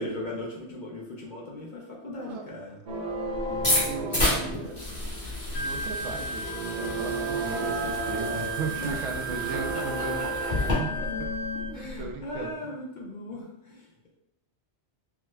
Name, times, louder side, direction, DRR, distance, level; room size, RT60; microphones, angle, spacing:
voice 1, 0.0-2.8 8.8-9.1 9.5-10.8 11.7-13.9, left 1 dB, 55° left, -2 dB, 0.6 m, -38 dB
sound 1, 2.9-12.4, right 1 dB, 45° right, 0.6 m, -34 dB
voice 2, 3.3-4.8 5.5-10.3 10.7-11.0 11.5-12.6, right 4 dB, 80° right, 2 dB, 0.9 m, -36 dB
sound 2, 3.5-10.7, left 1 dB, 35° left, 1.4 m, -31 dB
Wind instrument woodwind instrument, 5.5-11.8, right 4 dB, 90° left, 1.0 m, -35 dB
4.7 x 2.0 x 2.2 m, 0.86 s
omnidirectional pair, 1.2 m